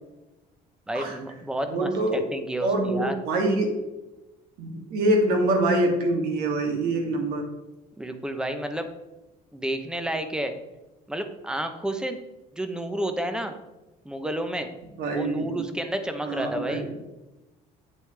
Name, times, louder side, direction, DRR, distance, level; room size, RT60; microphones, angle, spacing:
voice 1, 0.9-3.2 8.0-8.9 9.5-10.6 11.1-12.2 12.5-13.6 14.0-14.7 15.1-16.9, right 1 dB, 5° right, 7 dB, 0.8 m, -30 dB
voice 2, 1.7-2.2 2.6-3.8 4.6-7.5 15.0-15.7 16.2-16.9, right 1 dB, 75° right, 2 dB, 2.5 m, -25 dB
9.0 x 8.1 x 3.4 m, 1.0 s
cardioid pair, 160°, 16 cm